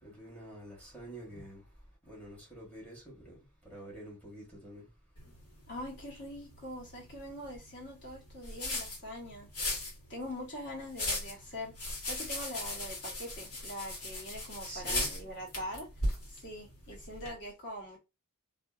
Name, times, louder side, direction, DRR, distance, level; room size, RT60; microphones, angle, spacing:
voice 1, 0.0-1.6 2.1-3.4 3.6-4.9 14.6-15.1, right 1 dB, 5° left, 1.1 m, -47 dB
sound 1, 5.2-17.3, left 1 dB, 90° left, 1.3 m, -39 dB
voice 2, 5.7-9.5 10.1-11.7 12.0-15.9 16.3-18.0, equal, 50° left, 1.3 m, -43 dB
2.7 x 2.4 x 2.3 m
head